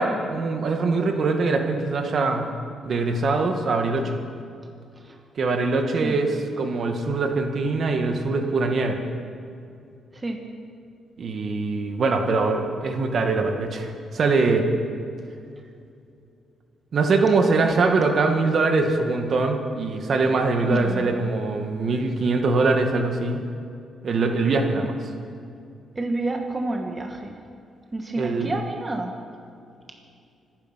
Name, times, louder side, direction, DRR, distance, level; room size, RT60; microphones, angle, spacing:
voice 1, 0.0-2.5 2.9-4.2 5.4-9.0 11.2-14.7 16.9-23.4 24.0-24.9 28.2-28.5, right 3 dB, 50° right, 4 dB, 1.8 m, -23 dB
voice 2, 20.6-21.3 25.9-27.4 27.9-29.2, right 2 dB, 20° right, 3 dB, 1.4 m, -29 dB
25.0 x 9.9 x 5.8 m, 2.5 s
cardioid pair, 110°, 0 cm